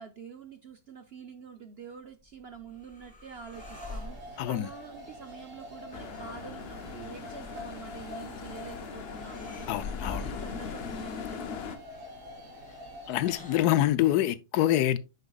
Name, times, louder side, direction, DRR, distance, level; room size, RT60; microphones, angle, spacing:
voice 1, 0.0-11.8, right 6 dB, 60° right, 0.6 m, -46 dB
sound 1, 2.1-14.1, left 2 dB, 5° left, 1.2 m, -51 dB
sound 2, 3.5-13.6, left 1 dB, 45° right, 2.1 m, -46 dB
voice 2, 4.4-4.7 9.7-10.2 13.1-15.0, left 13 dB, 80° left, 1.1 m, -25 dB
sound 3, 5.9-11.8, left 7 dB, 60° left, 0.6 m, -40 dB
9.8 x 4.8 x 2.3 m
omnidirectional pair, 1.7 m